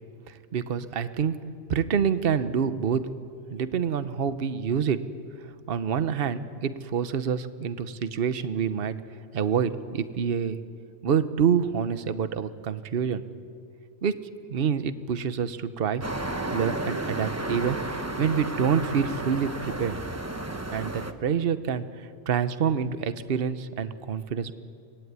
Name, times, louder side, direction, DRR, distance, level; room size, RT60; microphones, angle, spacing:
voice 1, 0.3-1.4 1.7-3.1 3.5-5.0 5.4-9.0 9.3-10.6 11.0-13.2 14.0-14.2 14.5-16.0 16.5-20.0 20.7-24.5, right 7 dB, 50° right, 12 dB, 1.0 m, -27 dB
sound 1, 16.0-21.1, right 2 dB, 15° right, 1.0 m, -32 dB
24.0 x 19.0 x 9.5 m, 2.3 s
omnidirectional pair, 1.3 m